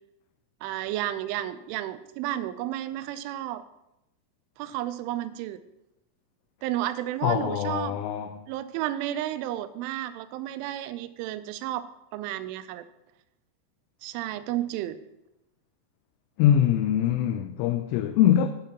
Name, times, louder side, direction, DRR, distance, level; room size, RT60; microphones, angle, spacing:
voice 1, 0.6-3.6 4.6-5.6 6.6-8.0 8.5-11.9 12.1-12.9 14.0-15.0, right 13 dB, 85° right, 3.0 m, -32 dB
voice 2, 7.2-8.4 16.4-18.5, left 10 dB, 90° left, 3.1 m, -23 dB
9.2 x 5.8 x 7.1 m
omnidirectional pair, 5.5 m